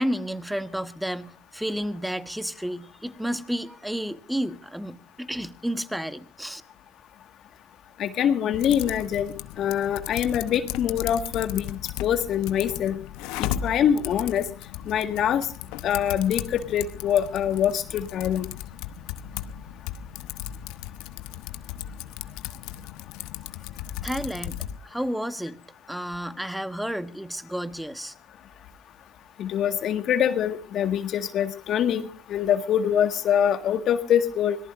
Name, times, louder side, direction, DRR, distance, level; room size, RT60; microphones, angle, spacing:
voice 1, 0.0-6.6 24.0-25.6 25.9-28.1, equal, 5° right, 1.4 m, -31 dB
voice 2, 8.0-13.0 13.4-14.4 14.9-15.5 15.8-18.5 29.4-34.6, left 9 dB, 55° left, 1.7 m, -24 dB
Typing, 8.5-24.8, left 11 dB, 75° left, 0.9 m, -36 dB
25.0 x 18.5 x 2.6 m
supercardioid pair, 75°, 0 cm